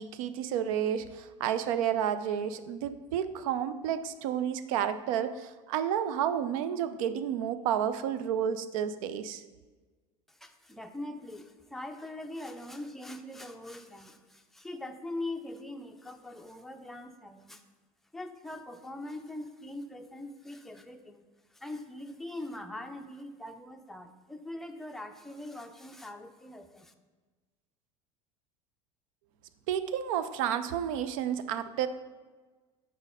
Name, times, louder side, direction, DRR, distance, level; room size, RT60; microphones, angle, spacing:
voice 1, 0.0-9.4 29.7-31.9, right 9 dB, 80° right, 12 dB, 0.4 m, -31 dB
voice 2, 10.3-17.6 18.1-21.2 21.5-26.9, left 1 dB, ahead, 5 dB, 0.4 m, -42 dB
5.0 x 4.0 x 5.4 m, 1.3 s
supercardioid pair, 100°, 17 cm